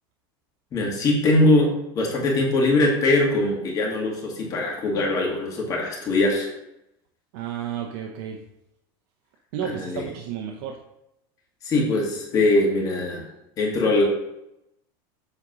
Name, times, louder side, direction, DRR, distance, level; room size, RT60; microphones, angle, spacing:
voice 1, 0.7-1.7 1.9-6.5 9.6-10.1 11.6-13.3 13.6-14.0, left 2 dB, 30° left, -1 dB, 2.0 m, -22 dB
voice 2, 7.3-8.4 9.5-10.8, right 9 dB, 65° right, 2 dB, 0.8 m, -32 dB
7.9 x 3.9 x 6.1 m, 0.85 s
supercardioid pair, 165°, 12 cm